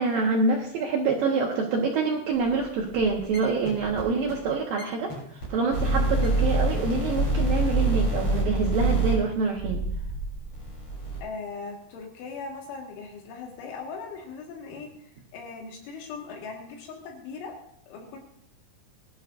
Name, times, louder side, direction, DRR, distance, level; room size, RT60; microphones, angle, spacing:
voice 1, 0.0-9.8, right 4 dB, 70° right, -1 dB, 2.3 m, -26 dB
sound 1, 2.4-2.5 2.8-3.4 3.6-4.0 4.3-4.4 4.8-4.9 5.1-5.2 5.4-5.5 5.7-11.2, right 2 dB, 30° left, 7.6 m, -26 dB
voice 2, 11.2-17.6 17.9-18.2, left 4 dB, 80° left, 0 dB, 4.1 m, -39 dB
22.0 x 12.0 x 2.6 m, 0.68 s
omnidirectional pair, 5.4 m